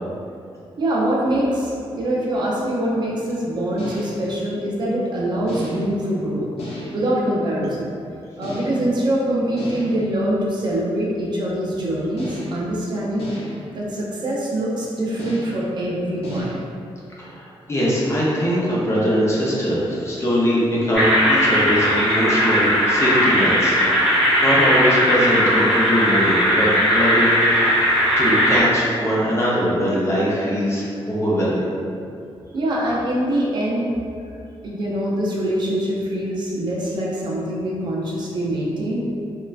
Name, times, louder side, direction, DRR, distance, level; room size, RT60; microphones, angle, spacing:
voice 1, 0.8-6.5 6.9-8.0 8.4-13.3 13.7-16.5 32.5-33.9 34.6-39.1, right 1 dB, 45° right, -5 dB, 0.5 m, -24 dB
sound 1, 3.8-4.3 5.5-6.0 6.6-7.1 8.4-9.0 9.6-10.1 12.2-12.7 13.2-13.7 15.2-15.7 16.2-16.6, equal, 70° left, 0.7 m, -34 dB
voice 2, 17.2-27.8 28.2-31.7, equal, 25° left, -6 dB, 0.5 m, -21 dB
sound 2, 20.9-28.6, equal, 5° left, 0.9 m, -18 dB
3.1 x 2.2 x 2.3 m, 2.5 s
wide cardioid pair, 175°, 10 cm